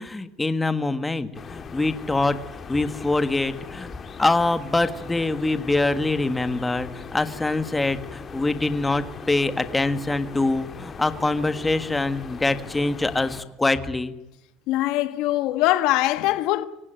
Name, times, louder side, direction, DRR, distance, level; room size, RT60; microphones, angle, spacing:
voice 1, 0.0-2.4 2.7-3.9 4.2-14.1, left 2 dB, 10° left, 1.6 m, -24 dB
sound 1, 1.3-13.4, left 5 dB, 30° left, 2.3 m, -39 dB
voice 2, 14.7-16.7, left 16 dB, 70° left, 1.4 m, -22 dB
25.0 x 18.5 x 9.0 m
cardioid pair, 135°, 0 cm